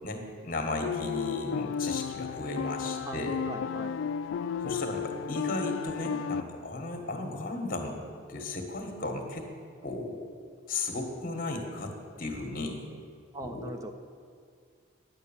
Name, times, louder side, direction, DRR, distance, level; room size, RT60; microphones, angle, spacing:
voice 1, 0.0-3.3 4.6-8.0 8.3-9.5 9.8-10.2 10.7-11.9 12.2-12.8 13.4-13.7, left 2 dB, 45° left, 3 dB, 1.5 m, -35 dB
sound 1, 0.8-6.4, left 6 dB, 75° left, 0.3 m, -33 dB
voice 2, 3.0-4.0 13.3-13.9, right 1 dB, 15° right, 6 dB, 0.5 m, -40 dB
10.0 x 8.3 x 7.2 m, 2.2 s
head